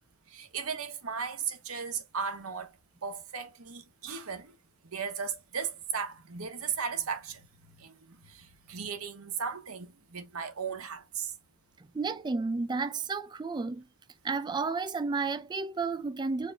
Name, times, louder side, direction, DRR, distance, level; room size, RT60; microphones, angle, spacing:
voice 1, 0.3-2.7 3.0-4.5 4.8-7.4 7.8-11.3, right 6 dB, 80° right, 1.1 m, -36 dB
voice 2, 11.9-13.9 14.2-16.5, right 4 dB, 20° right, 0.3 m, -32 dB
4.7 x 2.2 x 4.2 m
head